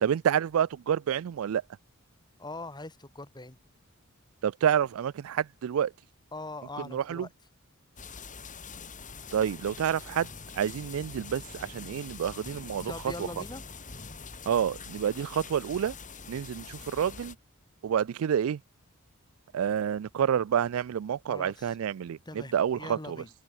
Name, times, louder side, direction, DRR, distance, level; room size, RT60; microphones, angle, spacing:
voice 1, 0.0-1.6 4.4-5.9 6.9-7.3 9.3-10.3 10.5-12.9 14.5-15.9 16.3-17.3 17.8-18.6 19.5-22.2 22.5-23.2, right 8 dB, 70° right, 0.3 m, -28 dB
voice 2, 2.4-3.6 6.3-7.3 12.9-13.6 21.3-21.8 22.2-23.3, left 2 dB, 20° left, 2.6 m, -41 dB
sound 1, 8.0-17.3, left 5 dB, 35° left, 4.6 m, -44 dB
head